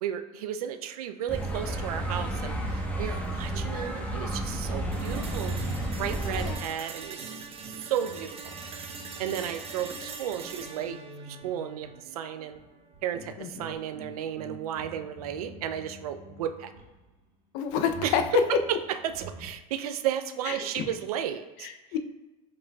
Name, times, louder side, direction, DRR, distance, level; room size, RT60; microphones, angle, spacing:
voice 1, 0.0-5.6 6.0-8.6 9.2-11.0 11.2-12.6 13.0-16.7 18.0-18.8 19.0-21.7, right 10 dB, 90° right, 9 dB, 0.4 m, -33 dB
sound 1, 1.3-6.5, right 1 dB, 10° left, 0.9 m, -31 dB
sound 2, 4.9-12.9, right 5 dB, 30° right, 0.6 m, -43 dB
voice 2, 6.2-6.6 13.4-13.5 17.5-18.2 20.5-20.9 21.6-22.0, left 9 dB, 65° left, 7 dB, 0.5 m, -30 dB
sound 3, 6.9-17.1 17.7-19.5, right 2 dB, 55° right, 1.1 m, -47 dB
5.0 x 3.7 x 2.3 m, 1.1 s
hypercardioid pair, 90°, 19 cm